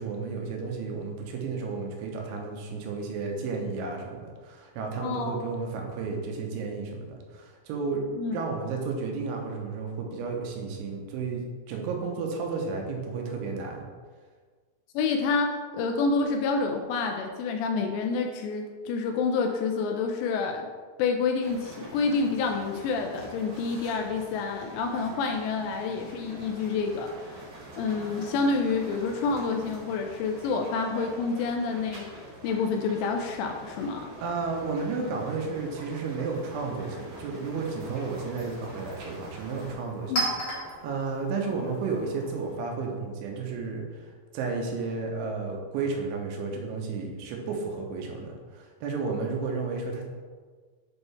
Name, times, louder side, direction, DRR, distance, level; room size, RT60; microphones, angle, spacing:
voice 1, 0.0-13.9 34.2-40.3 40.7-50.1, right 4 dB, 90° right, 1 dB, 3.3 m, -32 dB
voice 2, 5.0-5.5 8.1-8.4 14.9-20.7 21.0-27.4 27.8-32.1 32.4-34.1 40.1-40.3, left 4 dB, 85° left, 4 dB, 2.6 m, -28 dB
sound 1, 21.4-39.7, right 1 dB, 70° right, 1.6 m, -45 dB
Chink clink, 37.2-42.7, right 1 dB, 55° left, 1.9 m, -37 dB
7.7 x 4.4 x 3.3 m, 1.5 s
omnidirectional pair, 5.3 m